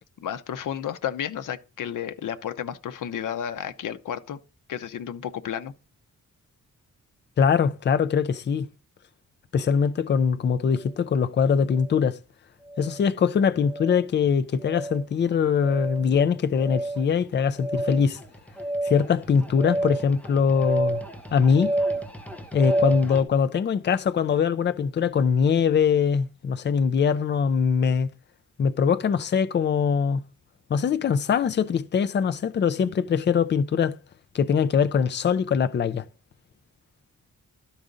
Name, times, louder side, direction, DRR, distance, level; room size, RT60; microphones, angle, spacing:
voice 1, 0.2-4.4 4.7-5.7, left 9 dB, 80° left, 0.7 m, -32 dB
voice 2, 7.4-8.7 9.5-12.2 12.8-18.2 18.8-21.0 21.3-21.7 22.5-28.1 28.6-30.2 30.7-34.0 34.3-36.0, left 6 dB, 35° left, 0.4 m, -22 dB
sound 1, 11.7-12.0 12.7-13.0 13.6-14.0 14.6-15.1 15.6-16.0 16.6-23.2, right 1 dB, 5° left, 0.9 m, -30 dB
12.0 x 4.9 x 3.9 m
wide cardioid pair, 180°, 31 cm